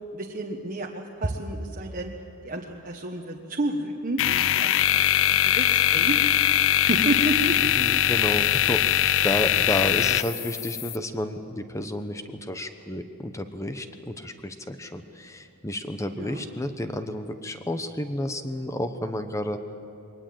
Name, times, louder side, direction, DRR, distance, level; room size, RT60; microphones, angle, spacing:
voice 1, 0.1-2.1 2.4-6.2 6.9-7.6 16.1-16.4, right 1 dB, 40° right, -1 dB, 1.3 m, -30 dB
sound 1, 4.2-11.0, left 12 dB, 60° left, 0.5 m, -22 dB
voice 2, 7.8-19.7, left 1 dB, 15° left, 8 dB, 1.0 m, -31 dB
22.5 x 19.0 x 7.7 m, 2.9 s
head